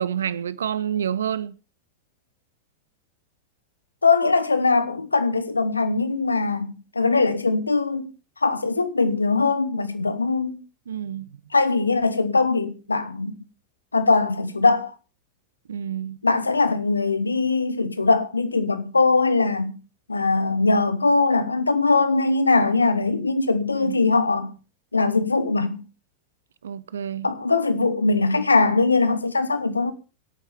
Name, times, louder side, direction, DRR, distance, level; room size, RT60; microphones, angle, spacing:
voice 1, 0.0-1.5 10.9-11.4 15.7-16.2 23.7-24.1 26.6-27.3, right 9 dB, 65° right, 0.6 m, -28 dB
voice 2, 4.0-8.1 8.4-10.6 11.5-13.4 13.9-14.9 16.2-19.8 20.1-24.5 24.9-25.9 27.2-29.9, left 3 dB, 80° left, 1.1 m, -21 dB
24.5 x 8.9 x 3.5 m
figure-of-eight pair, 90°, 0 cm